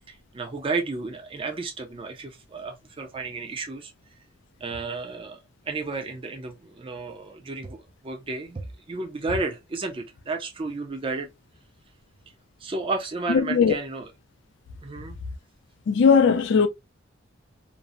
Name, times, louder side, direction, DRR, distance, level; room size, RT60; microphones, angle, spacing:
voice 1, 0.1-3.9 4.6-5.4 5.7-11.3 12.6-14.1 14.8-15.2, right 3 dB, 25° right, 0.4 m, -32 dB
voice 2, 13.3-13.7 15.9-16.7, left 6 dB, 60° left, 0.4 m, -18 dB
2.6 x 2.0 x 2.5 m
head